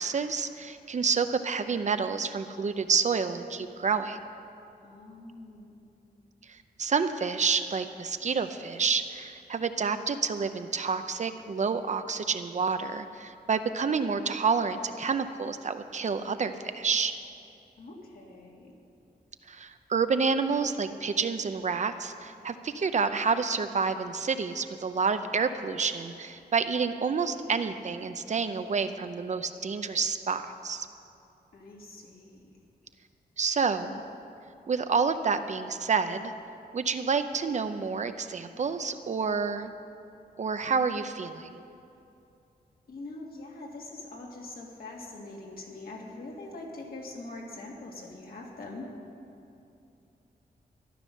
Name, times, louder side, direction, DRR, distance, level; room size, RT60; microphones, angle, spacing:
voice 1, 0.0-4.2 6.5-17.1 19.5-30.9 33.4-34.0 34.7-36.3 36.7-39.7 40.4-41.6, right 5 dB, 45° right, 9 dB, 0.6 m, -29 dB
voice 2, 4.8-5.8 17.8-18.7 31.5-32.4 42.9-48.9, left 2 dB, 65° left, -1 dB, 2.3 m, -43 dB
13.5 x 11.5 x 6.4 m, 2.6 s
wide cardioid pair, 150°, 16 cm